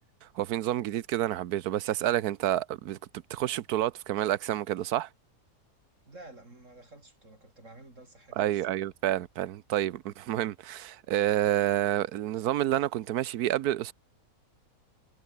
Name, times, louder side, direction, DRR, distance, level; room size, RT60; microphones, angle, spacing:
voice 1, 0.3-3.0 3.3-5.1 8.4-13.9, right 13 dB, 75° right, 1.2 m, -29 dB
voice 2, 6.0-8.8, right 2 dB, 50° right, 5.1 m, -51 dB
omnidirectional pair, 1.7 m